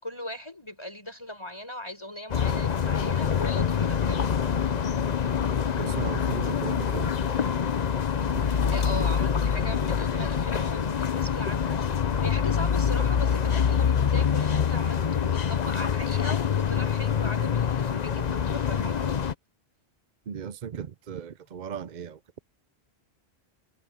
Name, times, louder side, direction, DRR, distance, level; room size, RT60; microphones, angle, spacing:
voice 1, 0.0-4.2 8.5-19.2, left 1 dB, 25° left, 5.4 m, -39 dB
sound 1, 2.3-19.3, left 7 dB, 45° left, 0.8 m, -25 dB
voice 2, 5.8-7.1 8.3-8.5 20.3-22.4, right 8 dB, 50° right, 0.7 m, -36 dB
omnidirectional pair, 1.1 m